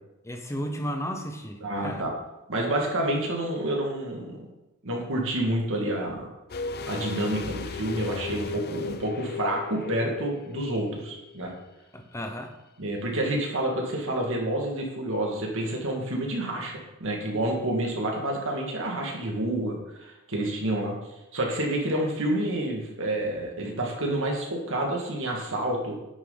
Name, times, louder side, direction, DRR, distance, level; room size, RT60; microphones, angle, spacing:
voice 1, 0.2-2.1 11.9-12.6 21.9-22.0, equal, 15° left, 5 dB, 0.9 m, -34 dB
voice 2, 1.6-2.1 2.5-4.4 4.8-6.3 6.8-11.5 12.8-20.9 21.3-25.9, right 1 dB, 65° right, 0 dB, 2.0 m, -29 dB
sound 1, 6.5-11.4 11.6-11.7, left 4 dB, 45° left, 0.6 m, -36 dB
9.8 x 6.6 x 4.0 m, 0.98 s
head